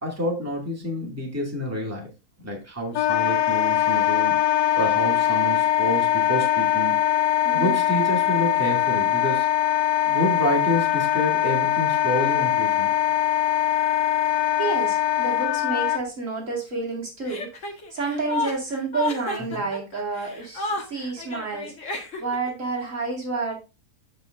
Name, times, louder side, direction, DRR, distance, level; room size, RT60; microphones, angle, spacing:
voice 1, 0.0-2.1 2.4-6.9 7.5-9.5 10.1-12.9 19.4-19.6, equal, 10° right, -2 dB, 2.2 m, -28 dB
Wind instrument woodwind instrument, 2.9-16.0, left 12 dB, 80° left, 1.1 m, -22 dB
voice 2, 7.4-7.7 14.6-17.5 17.9-23.6, right 4 dB, 55° right, -2 dB, 2.4 m, -30 dB
Chuckle chortle, 17.2-22.5, left 2 dB, 55° left, 1.9 m, -31 dB
14.0 x 4.9 x 2.5 m, 0.28 s
omnidirectional pair, 1.6 m